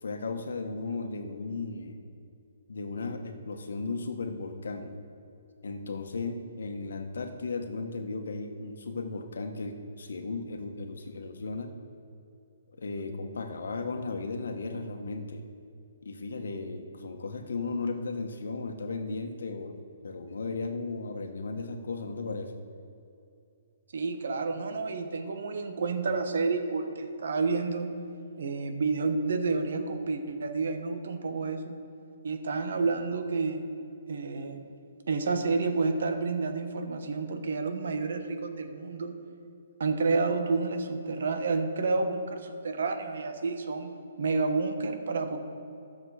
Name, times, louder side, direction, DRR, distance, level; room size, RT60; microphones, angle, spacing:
voice 1, 0.0-2.0 2.7-5.0 5.6-11.7 12.8-15.4 16.0-22.5, left 3 dB, 80° left, 6 dB, 1.3 m, -35 dB
voice 2, 23.9-27.9 28.4-31.7 32.2-33.6 34.1-34.6 35.1-39.2 39.8-45.4, right 4 dB, 60° right, 6 dB, 1.2 m, -30 dB
13.0 x 7.2 x 4.9 m, 2.6 s
hypercardioid pair, 175°, 0 cm